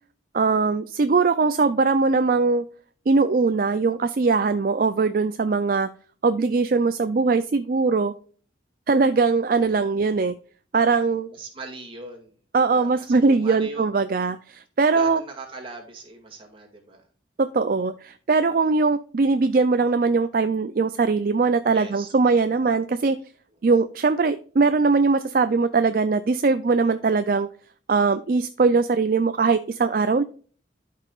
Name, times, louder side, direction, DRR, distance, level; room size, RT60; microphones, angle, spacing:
voice 1, 0.3-2.6 3.1-5.9 6.2-8.1 8.9-10.3 10.7-11.3 12.5-15.2 17.4-23.2 23.6-27.5 27.9-30.2, right 4 dB, 50° right, 10 dB, 0.4 m, -21 dB
voice 2, 11.3-13.9 14.9-17.0 18.5-18.6 21.7-22.1 29.9-30.0, right 3 dB, 30° right, 1 dB, 2.2 m, -40 dB
12.5 x 5.5 x 2.4 m, 0.42 s
head